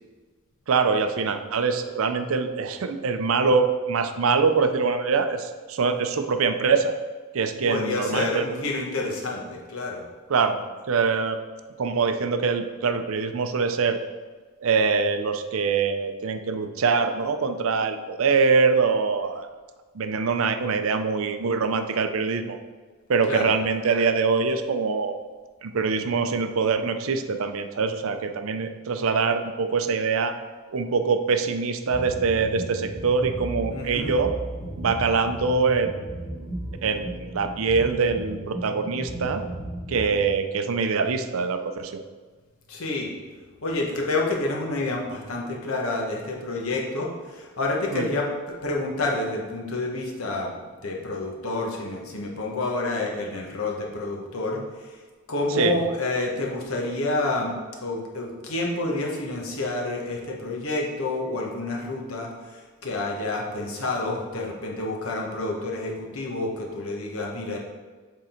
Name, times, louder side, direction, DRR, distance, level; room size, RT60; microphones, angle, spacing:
voice 1, 0.7-6.9 7.3-8.4 10.3-11.4 11.8-14.0 14.6-19.5 19.9-22.6 23.1-25.1 25.6-30.3 30.7-34.3 34.8-35.9 36.8-39.4 39.9-42.0 47.9-48.1 55.6-55.8, right 5 dB, 75° right, 8 dB, 0.5 m, -24 dB
voice 2, 7.7-10.0 23.3-23.5 33.7-34.1 42.7-43.1 43.6-50.6 50.8-55.0 55.3-57.5 57.8-67.6, left 2 dB, 80° left, -1 dB, 1.2 m, -29 dB
sound 1, 31.9-40.2, right 1 dB, 20° left, 2.0 m, -35 dB
7.6 x 3.7 x 4.4 m, 1.4 s
head